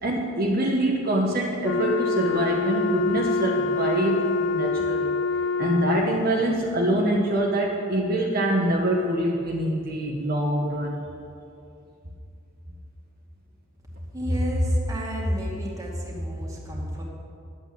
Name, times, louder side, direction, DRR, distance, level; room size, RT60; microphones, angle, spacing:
voice 1, 0.0-5.1 5.6-11.0, right 1 dB, 45° right, -2 dB, 1.3 m, -24 dB
Wind instrument woodwind instrument, 1.6-6.3, left 4 dB, 80° left, 0.4 m, -26 dB
voice 2, 14.1-17.0, equal, 15° right, -3 dB, 2.3 m, -28 dB
11.5 x 8.5 x 7.9 m, 2.5 s
head